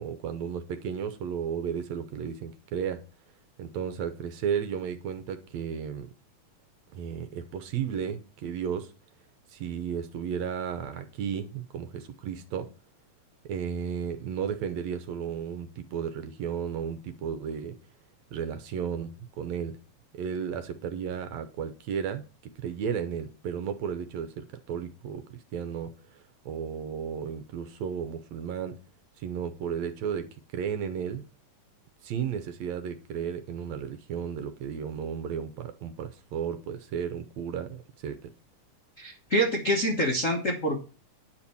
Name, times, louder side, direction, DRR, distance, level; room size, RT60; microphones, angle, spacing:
voice 1, 0.0-3.0 3.6-6.1 6.9-8.9 9.5-12.7 13.4-17.8 18.3-19.8 20.2-25.2 25.5-28.7 29.2-31.2 32.0-38.3, right 7 dB, 70° right, 1.8 m, -34 dB
voice 2, 39.0-40.8, equal, 60° left, 0.8 m, -26 dB
10.0 x 5.5 x 7.0 m
omnidirectional pair, 3.6 m